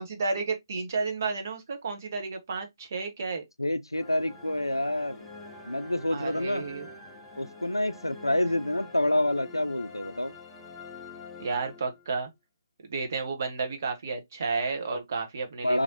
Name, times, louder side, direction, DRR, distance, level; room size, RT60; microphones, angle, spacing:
voice 1, 0.0-3.4 6.1-6.9 11.4-12.3 12.8-15.8, right 4 dB, 40° right, 0.7 m, -32 dB
voice 2, 3.6-5.3 5.6-6.7 7.4-10.3 15.6-15.8, left 1 dB, 85° left, 0.4 m, -28 dB
sound 1, 3.9-12.3, left 3 dB, 10° left, 0.5 m, -46 dB
3.1 x 2.5 x 2.7 m
figure-of-eight pair, 145°, 2 cm